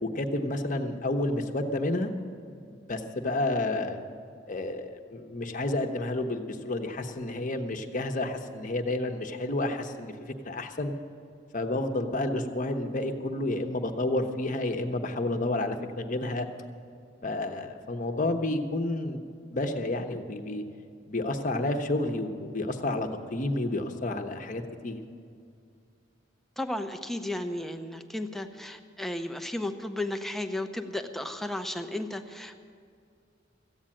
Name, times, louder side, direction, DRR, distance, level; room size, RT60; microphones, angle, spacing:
voice 1, 0.0-2.1 2.9-4.0 4.5-10.9 11.5-16.5 17.2-19.2 19.5-20.6 21.1-25.0, left 2 dB, 40° left, 6 dB, 1.0 m, -30 dB
voice 2, 26.6-32.6, left 1 dB, ahead, 7 dB, 0.6 m, -34 dB
14.5 x 8.8 x 8.7 m, 2.3 s
head